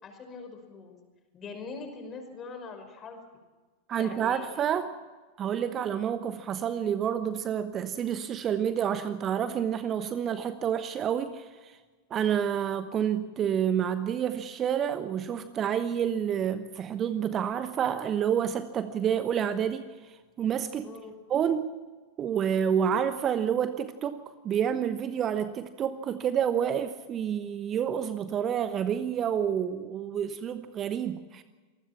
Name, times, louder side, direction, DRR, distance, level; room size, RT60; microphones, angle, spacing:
voice 1, 0.0-1.0 1.3-3.2 4.0-4.6 20.8-21.1, left 4 dB, 25° left, 6 dB, 5.4 m, -42 dB
voice 2, 3.9-5.0 5.4-11.8 12.1-20.9 21.3-21.7 22.2-31.4, right 8 dB, 30° right, 12 dB, 1.1 m, -29 dB
27.0 x 20.0 x 5.9 m, 1.3 s
figure-of-eight pair, 90°, 0 cm